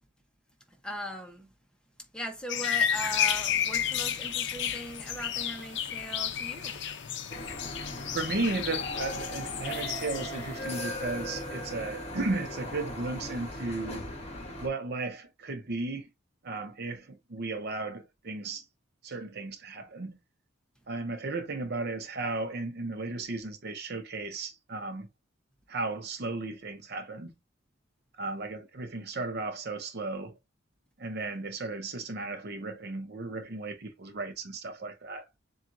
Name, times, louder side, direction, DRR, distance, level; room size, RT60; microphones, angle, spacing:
voice 1, 0.8-1.5 2.1-6.8, right 1 dB, 5° left, 0.9 m, -39 dB
sound 1, 2.5-10.8, left 9 dB, 60° left, 0.5 m, -32 dB
Thunder, 2.9-8.2, right 1 dB, 20° right, 1.0 m, -53 dB
sound 2, 7.3-14.7, left 1 dB, 30° left, 1.1 m, -38 dB
voice 2, 8.1-14.1 14.6-16.1 16.4-18.6 19.0-20.2 20.9-25.1 25.7-27.3 28.2-30.4 31.0-35.3, right 3 dB, 50° right, 0.6 m, -35 dB
7.2 x 2.4 x 2.6 m
head